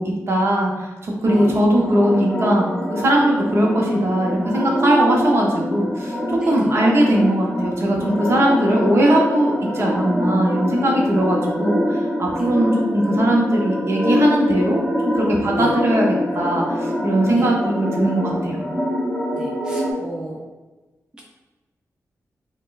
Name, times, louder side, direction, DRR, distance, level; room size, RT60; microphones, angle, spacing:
voice 1, 0.0-18.6, right 1 dB, 50° right, -1 dB, 0.7 m, -19 dB
sound 1, 1.2-19.9, left 1 dB, 10° left, 1.2 m, -25 dB
voice 2, 19.4-20.4, right 1 dB, 15° right, -3 dB, 0.5 m, -35 dB
4.1 x 2.1 x 2.5 m, 1.2 s
wide cardioid pair, 110°, 6 cm